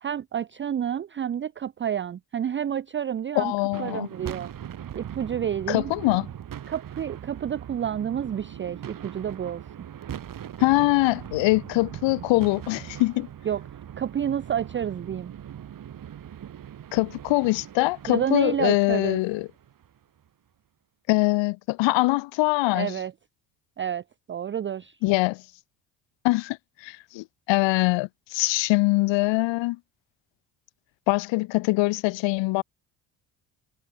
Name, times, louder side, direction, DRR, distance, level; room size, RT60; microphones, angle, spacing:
voice 1, 0.0-3.5 3.8-4.5 4.9-5.9 6.7-9.6 13.4-13.6 14.0-15.3 18.1-19.2 22.7-23.1 23.8-25.0, right 9 dB, 25° right, 0.5 m, -29 dB
voice 2, 3.4-4.1 5.7-6.3 10.6-13.3 16.9-19.5 21.1-23.0 25.0-25.4 26.2-26.6 26.8-29.8 31.1-32.6, left 22 dB, 70° left, 0.8 m, -23 dB
sound 1, 3.7-20.0, right 10 dB, 45° right, 1.5 m, -40 dB
supercardioid pair, 65°, 46 cm